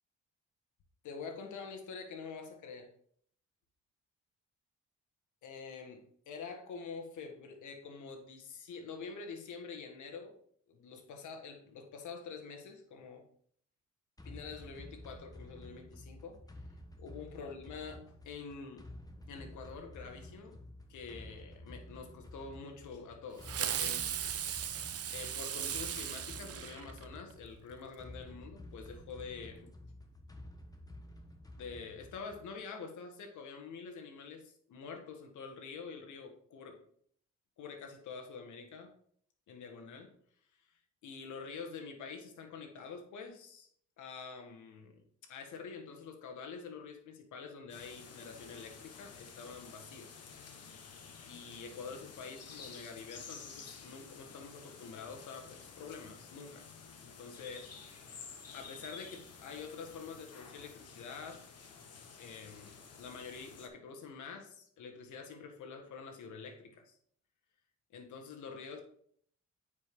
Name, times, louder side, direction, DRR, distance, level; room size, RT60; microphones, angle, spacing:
voice 1, 1.0-2.9 5.4-10.4 10.7-13.3 14.2-16.4 17.0-18.8 19.3-20.6 20.9-24.1 25.1-29.7 31.5-36.8 37.6-38.9 39.5-40.1 41.0-43.7 44.0-50.2 51.3-56.7 57.0-57.7 58.5-61.4 62.2-67.0 67.9-68.8, left 5 dB, 75° left, 4 dB, 1.7 m, -47 dB
sound 1, 14.2-32.6, left 1 dB, 10° left, 1.2 m, -51 dB
Fireworks, 23.4-27.3, right 9 dB, 50° right, 0.8 m, -37 dB
sound 2, 47.7-63.7, left 5 dB, 55° left, 1.4 m, -52 dB
9.3 x 5.2 x 3.7 m, 0.62 s
cardioid pair, 90°, 30 cm